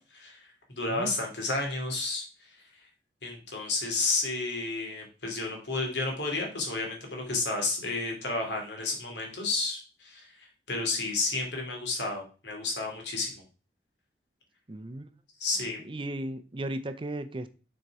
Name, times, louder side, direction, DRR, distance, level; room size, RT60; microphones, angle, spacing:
voice 1, 0.0-2.6 3.2-13.4 15.4-15.8, left 3 dB, 90° left, 1 dB, 2.6 m, -32 dB
voice 2, 14.7-15.1 15.8-17.5, right 1 dB, 30° right, 10 dB, 0.5 m, -36 dB
6.7 x 4.5 x 4.7 m, 0.34 s
head